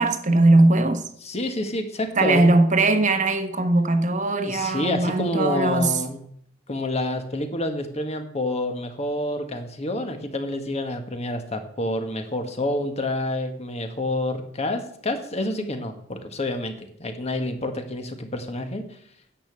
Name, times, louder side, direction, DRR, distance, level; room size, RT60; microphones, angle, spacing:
voice 1, 0.0-1.0 2.2-6.0, right 2 dB, 40° right, 1.1 m, -19 dB
voice 2, 1.2-2.5 4.4-6.2 6.7-18.8, left 1 dB, 35° left, 1.5 m, -28 dB
10.0 x 6.9 x 7.5 m
head